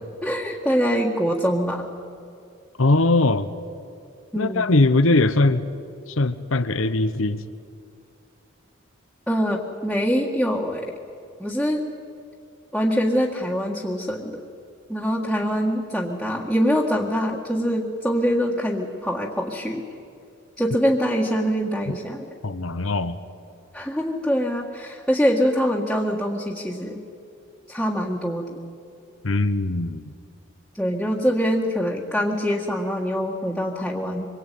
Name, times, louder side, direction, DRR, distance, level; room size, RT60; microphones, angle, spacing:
voice 1, 0.2-1.9 4.3-4.7 9.3-10.9 11.4-11.8 12.7-14.4 14.9-19.8 20.6-22.3 23.7-27.0 27.7-28.6 30.7-34.3, equal, ahead, -5 dB, 1.8 m, -24 dB
voice 2, 2.8-3.5 4.3-5.7 6.2-7.4 22.4-23.2 29.2-30.0, left 2 dB, 80° left, 11 dB, 1.0 m, -20 dB
26.5 x 23.0 x 9.3 m, 2.5 s
head